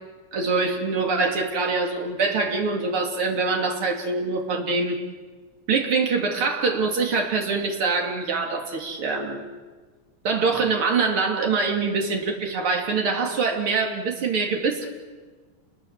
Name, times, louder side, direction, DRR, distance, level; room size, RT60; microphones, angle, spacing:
voice 1, 0.3-5.0 5.7-9.5 10.2-14.9, right 4 dB, 45° right, 2 dB, 3.6 m, -24 dB
29.0 x 22.0 x 7.4 m, 1.4 s
omnidirectional pair, 3.3 m